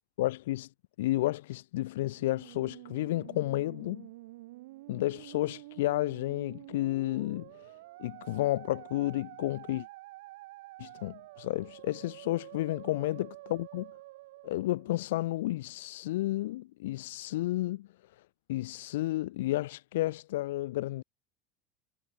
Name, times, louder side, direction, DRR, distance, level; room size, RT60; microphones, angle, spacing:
voice 1, 0.2-0.7 1.0-4.1 4.9-7.7 8.0-9.9 10.8-13.9 14.4-17.9 18.5-21.0, left 16 dB, 80° left, 0.4 m, -32 dB
Musical instrument, 2.0-15.4, right 19 dB, 75° right, 0.4 m, -49 dB
hypercardioid pair, 95°, 0 cm